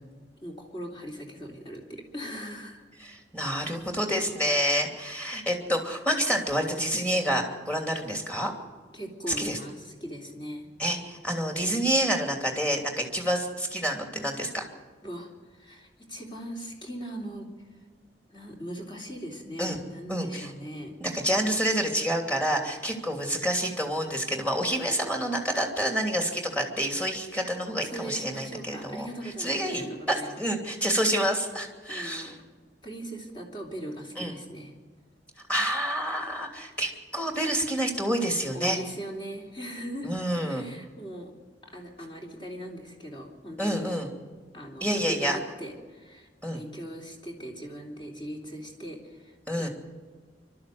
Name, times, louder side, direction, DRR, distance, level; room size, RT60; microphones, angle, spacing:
voice 1, 0.4-2.8 8.9-10.7 15.0-17.5 18.3-20.9 27.8-30.4 31.9-32.4 32.8-34.7 38.5-40.1 40.5-41.3 41.6-44.0 44.5-49.7, equal, 30° left, 0 dB, 3.5 m, -40 dB
voice 2, 3.0-8.5 9.4-9.6 10.8-14.7 19.6-19.8 20.1-20.5 21.0-29.1 29.4-32.3 34.2-34.4 35.5-38.8 40.0-40.6 43.6-44.1 44.8-45.4 46.4-46.6 49.5-49.7, equal, 10° left, 2 dB, 2.9 m, -28 dB
26.0 x 13.0 x 7.8 m, 1.4 s
head